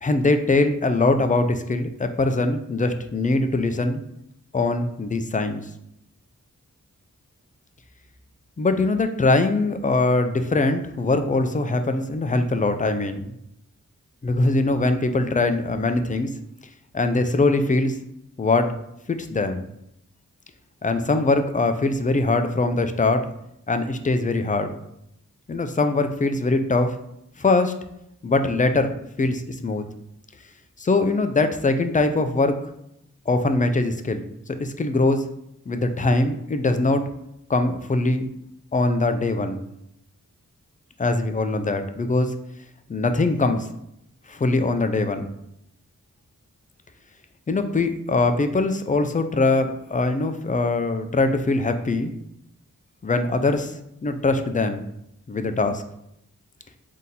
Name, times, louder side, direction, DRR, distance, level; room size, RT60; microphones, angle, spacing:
voice 1, 0.0-4.0 4.5-5.7 8.6-13.3 14.2-16.3 16.9-18.0 18.4-18.7 19.1-19.6 20.8-23.3 23.7-24.7 25.5-27.0 27.4-27.7 28.2-28.9 29.2-29.8 30.8-32.5 33.3-34.2 34.6-35.3 35.7-37.0 37.5-38.3 38.7-39.6 41.0-42.3 42.9-43.7 44.3-45.3 47.5-52.1 53.0-54.8 55.3-55.8, left 2 dB, 25° left, 8 dB, 0.4 m, -22 dB
3.6 x 2.8 x 4.0 m, 0.77 s
wide cardioid pair, 75°, 32 cm